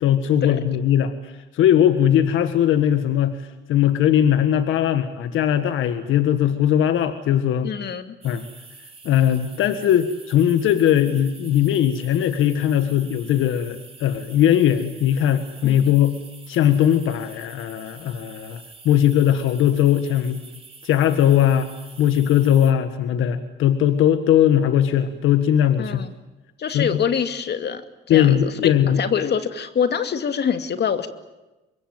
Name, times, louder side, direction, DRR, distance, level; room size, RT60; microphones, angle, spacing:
voice 1, 0.0-7.7 8.2-8.4 9.0-16.1 16.5-20.4 20.8-21.7 22.0-26.1 26.7-26.9 28.1-29.0, left 10 dB, 85° left, 10 dB, 1.7 m, -19 dB
voice 2, 7.6-8.2 15.6-16.0 25.8-26.1 26.6-27.8 28.1-28.5 29.0-31.1, left 7 dB, 60° left, 9 dB, 2.5 m, -25 dB
sound 1, 8.2-22.7, right 4 dB, 30° right, 4.9 m, -46 dB
25.5 x 22.5 x 9.3 m, 1.0 s
cardioid pair, 90°, 20 cm